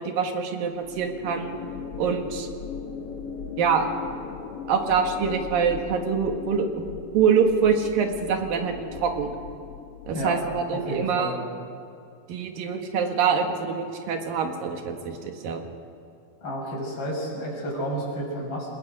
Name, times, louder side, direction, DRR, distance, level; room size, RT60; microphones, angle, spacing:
voice 1, 0.0-1.5 2.0-2.5 3.6-3.9 4.7-9.3 10.1-11.4 12.3-15.6, right 6 dB, 70° right, 4 dB, 3.2 m, -25 dB
sound 1, 0.8-11.3, left 6 dB, 60° left, 1.6 m, -39 dB
voice 2, 10.7-11.4 16.4-18.7, equal, 30° left, -3 dB, 6.4 m, -31 dB
29.0 x 19.5 x 5.1 m, 2.5 s
omnidirectional pair, 4.4 m